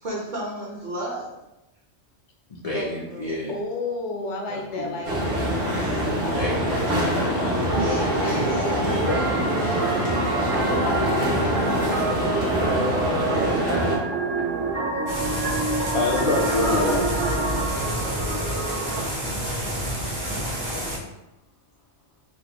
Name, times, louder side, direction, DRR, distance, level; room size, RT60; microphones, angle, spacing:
voice 1, 0.0-1.3 2.7-3.3 7.7-9.0 10.3-10.7 13.3-14.0 14.9-15.4, right 1 dB, 45° right, -5 dB, 0.9 m, -33 dB
voice 2, 2.5-3.5 4.5-5.0 6.2-7.3 15.7-17.1, left 2 dB, 55° left, -5 dB, 0.4 m, -27 dB
voice 3, 3.5-6.3 7.4-7.8 8.2-9.6, left 2 dB, 75° left, 1 dB, 0.9 m, -34 dB
sound 1, 5.0-14.0, equal, 60° right, 1.2 m, -24 dB
sound 2, 7.7-19.0, right 2 dB, 85° right, 1.3 m, -27 dB
sound 3, 15.1-21.0, equal, 25° right, 0.5 m, -29 dB
3.3 x 2.2 x 2.9 m, 0.90 s
omnidirectional pair, 1.2 m